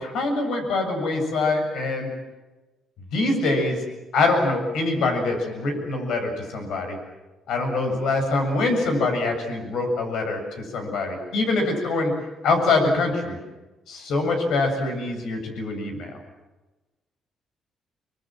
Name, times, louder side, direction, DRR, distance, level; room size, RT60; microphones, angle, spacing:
voice 1, 0.0-2.1 3.1-3.8 4.1-7.0 7.5-10.4 10.7-12.1 12.4-13.4 13.9-16.1, left 3 dB, 80° left, 4 dB, 7.5 m, -24 dB
27.5 x 24.5 x 7.7 m, 1.1 s
cardioid pair, 90°, 0 cm